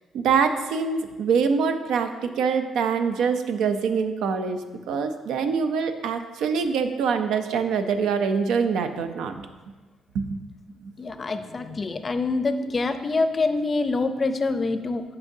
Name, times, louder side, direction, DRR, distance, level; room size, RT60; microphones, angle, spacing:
voice 1, 0.1-9.3 10.1-10.4 10.8-10.9, right 6 dB, 85° right, 8 dB, 0.5 m, -24 dB
voice 2, 11.0-15.0, left 3 dB, 35° left, 9 dB, 0.5 m, -25 dB
9.5 x 5.4 x 2.7 m, 1.2 s
cardioid pair, 90°, 0 cm